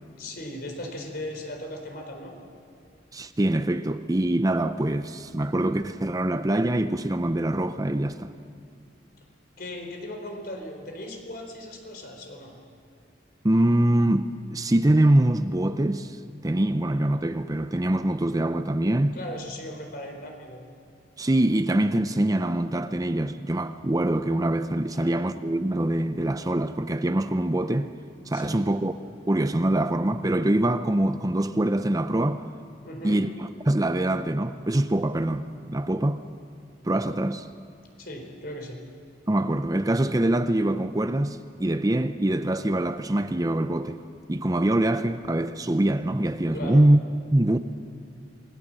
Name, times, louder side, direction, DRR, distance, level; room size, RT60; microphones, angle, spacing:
voice 1, 0.2-2.3 9.6-12.6 19.1-20.6 24.9-25.2 28.3-28.7 32.8-33.3 38.0-38.8 46.5-46.8, left 1 dB, 55° left, 4.2 m, -38 dB
voice 2, 3.1-8.3 13.4-16.2 16.4-19.2 21.2-27.9 28.3-28.9 29.3-32.4 33.0-33.3 33.7-36.2 36.8-37.5 39.3-44.0 44.3-47.0 47.3-47.6, right 1 dB, 20° right, 0.6 m, -24 dB
27.5 x 20.0 x 7.7 m
head